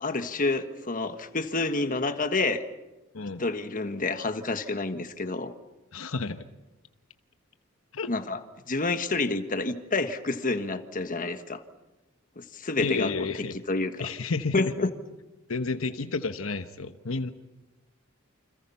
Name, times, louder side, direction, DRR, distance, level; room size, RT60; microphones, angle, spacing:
voice 1, 0.0-2.6 3.4-5.5 8.1-8.4 8.7-11.6 12.4-13.3 13.7-14.1 14.5-14.9, left 3 dB, 40° left, 9 dB, 1.5 m, -28 dB
voice 2, 5.9-6.4 7.9-8.1 12.8-13.5 14.0-14.7 15.5-17.3, left 4 dB, 75° left, 9 dB, 1.1 m, -31 dB
29.0 x 26.0 x 5.7 m, 1.1 s
head